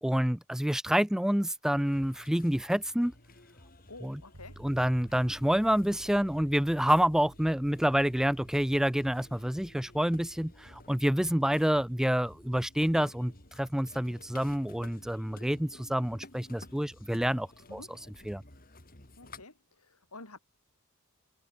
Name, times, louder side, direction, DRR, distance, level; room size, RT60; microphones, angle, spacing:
voice 1, 0.0-3.1 4.0-4.2 4.6-17.8 18.3-18.4, equal, ahead, 0.4 m, -28 dB
sound 1, 1.7-19.4, left 2 dB, 40° left, 6.5 m, -54 dB
voice 2, 3.9-4.6 17.7-17.9 19.2-20.4, left 2 dB, 80° left, 6.7 m, -50 dB
sound 2, 4.3-14.5, right 1 dB, 85° right, 3.3 m, -56 dB
head